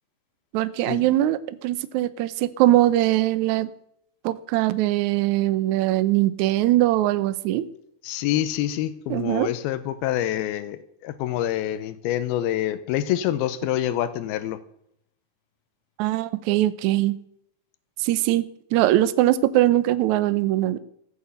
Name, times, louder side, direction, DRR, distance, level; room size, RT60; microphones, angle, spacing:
voice 1, 0.5-3.7 4.2-7.7 9.1-9.5 16.0-17.2 18.0-18.5 18.7-20.8, right 14 dB, 80° right, 13 dB, 1.7 m, -21 dB
voice 2, 8.0-14.6, left 12 dB, 90° left, 13 dB, 2.7 m, -26 dB
15.0 x 8.6 x 8.2 m, 0.74 s
omnidirectional pair, 4.3 m